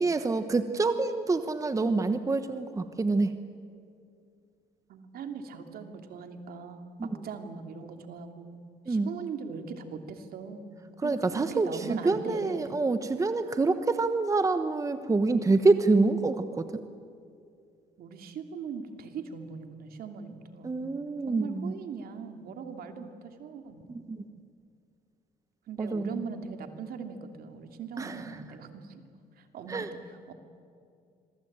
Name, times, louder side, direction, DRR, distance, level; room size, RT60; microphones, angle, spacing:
voice 1, 0.0-3.3 7.0-7.1 8.9-9.1 11.0-16.8 20.6-21.7 23.9-24.2 25.8-26.2 28.0-28.2 29.7-29.9, right 3 dB, 20° right, 9 dB, 1.1 m, -26 dB
voice 2, 4.9-12.7 18.0-20.9 21.3-23.9 25.7-29.0 29.4-30.3, right 5 dB, 65° right, 6 dB, 3.0 m, -40 dB
26.5 x 23.0 x 8.9 m, 2.4 s
cardioid pair, 110°, 17 cm